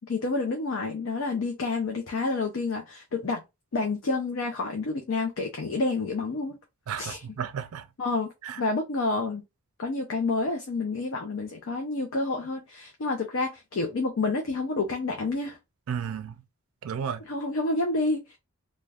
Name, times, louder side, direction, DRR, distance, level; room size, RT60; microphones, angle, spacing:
voice 1, 0.1-3.4 3.7-6.6 7.0-7.2 8.0-8.3 8.6-9.4 9.8-15.6 17.2-18.4, left 3 dB, 60° left, 0.5 m, -29 dB
voice 2, 6.9-7.9 8.4-8.6 15.9-16.4 16.8-17.2, right 7 dB, 70° right, 0.4 m, -33 dB
2.3 x 2.1 x 3.3 m
head